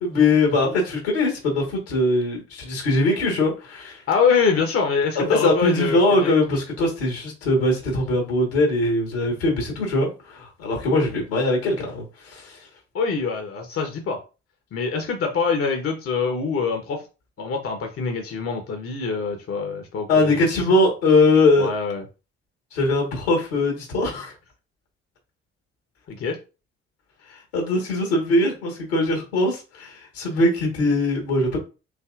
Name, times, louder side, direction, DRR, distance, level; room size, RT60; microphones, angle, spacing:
voice 1, 0.0-4.0 5.2-12.6 20.1-21.7 22.7-24.3 27.5-31.6, left 2 dB, 75° left, 1 dB, 1.7 m, -21 dB
voice 2, 4.1-6.3 12.9-14.2 14.7-17.0 17.4-20.4 21.6-22.0 26.1-26.4, left 5 dB, 45° left, 4 dB, 1.1 m, -24 dB
6.2 x 2.9 x 2.5 m, 0.32 s
figure-of-eight pair, 40°, 31 cm